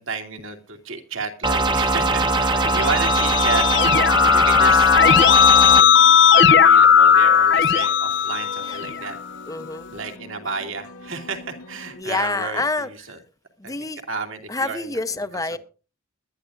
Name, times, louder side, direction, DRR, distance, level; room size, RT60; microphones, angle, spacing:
voice 1, 0.0-3.7 4.2-4.9 5.8-5.9 6.3-9.2 9.9-13.2 13.6-13.8 14.1-14.9, right 4 dB, 70° right, 4 dB, 2.6 m, -31 dB
sound 1, 1.4-5.8, right 2 dB, 20° right, 0.9 m, -21 dB
Keyboard (musical), 2.5-9.1, left 7 dB, 55° left, 0.6 m, -16 dB
sound 2, 3.6-12.0, left 2 dB, 90° left, 2.3 m, -42 dB
voice 2, 9.5-9.9 11.9-13.2 13.6-14.0 14.5-15.6, left 2 dB, 15° left, 12 dB, 0.8 m, -28 dB
21.0 x 12.0 x 2.6 m, 0.34 s
head